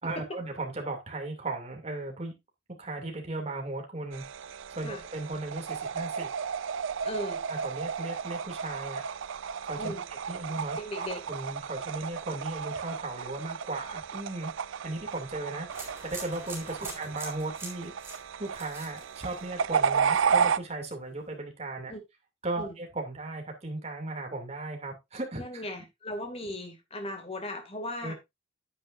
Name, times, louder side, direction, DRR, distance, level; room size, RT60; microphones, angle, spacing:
voice 1, 0.0-2.3 2.8-6.3 7.5-9.0 9.6-9.9 10.3-14.5 14.8-21.9 22.4-25.6 28.0-28.1, right 2 dB, 30° right, 2.7 m, -37 dB
sound 1, 4.1-20.6, right 6 dB, 70° right, 0.4 m, -33 dB
voice 2, 7.0-7.4 9.8-10.0 10.8-11.2 16.8-17.0 21.9-22.0 22.6-22.8 25.4-28.1, left 1 dB, 30° left, 2.3 m, -37 dB
sound 2, 15.7-19.7 20.0-20.5, right 3 dB, 10° right, 3.5 m, -44 dB
9.6 x 9.4 x 2.6 m
head